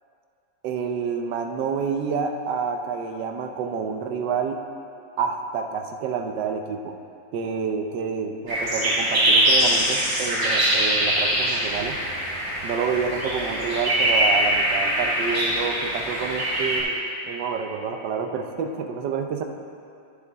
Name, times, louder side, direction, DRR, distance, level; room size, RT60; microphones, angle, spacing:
voice 1, 0.6-4.6 5.2-7.0 7.3-12.0 12.6-16.9 17.3-19.4, right 6 dB, 75° right, 5 dB, 1.3 m, -28 dB
sound 1, 8.5-16.8, right 1 dB, 50° right, 3.0 m, -23 dB
13.0 x 6.7 x 3.5 m, 2.5 s
omnidirectional pair, 2.1 m